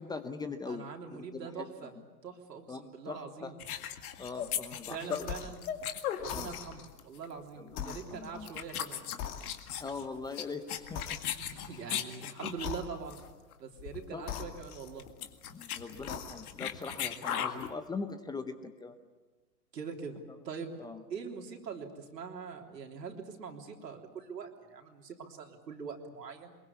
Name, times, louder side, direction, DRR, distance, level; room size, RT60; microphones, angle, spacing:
voice 1, 0.0-1.9 2.7-3.5 4.2-5.3 6.3-6.5 7.6-8.5 9.8-11.2 11.7-11.8 14.1-14.4 15.5-19.0 20.8-21.0, left 4 dB, 10° left, 10 dB, 0.7 m, -41 dB
voice 2, 0.7-2.0 2.2-3.6 4.9-5.7 6.2-9.2 11.4-13.2 13.6-15.1 17.0-17.6 19.7-26.5, right 5 dB, 80° right, 3 dB, 3.6 m, -43 dB
sound 1, 3.6-6.7 7.0-7.3 8.0-8.2 8.5-12.8 13.1-13.3 13.5-13.6 13.8-14.1 14.3-14.4 14.9-17.7, left 9 dB, 60° left, 2.0 m, -37 dB
sound 2, 5.2-5.7 6.2-7.0 7.7-8.8 9.2-10.0 10.9-11.7 12.6-13.3 14.2-15.3 15.9-16.7, left 8 dB, 35° left, 2.4 m, -42 dB
23.5 x 22.0 x 8.4 m, 1.3 s
hypercardioid pair, 115°, 49 cm